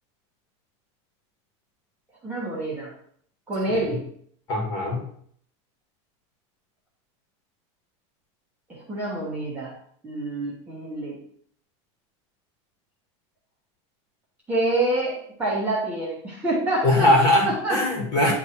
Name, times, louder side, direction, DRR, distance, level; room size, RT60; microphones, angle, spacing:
voice 1, 2.2-2.9 3.5-4.0 8.7-9.7 10.0-11.2 14.5-17.1 17.4-17.8, right 2 dB, 10° right, -6 dB, 1.3 m, -27 dB
voice 2, 4.5-5.0 16.8-18.3, left 1 dB, 25° left, -1 dB, 1.8 m, -21 dB
9.4 x 3.4 x 4.4 m, 0.64 s
supercardioid pair, 180°, 16 cm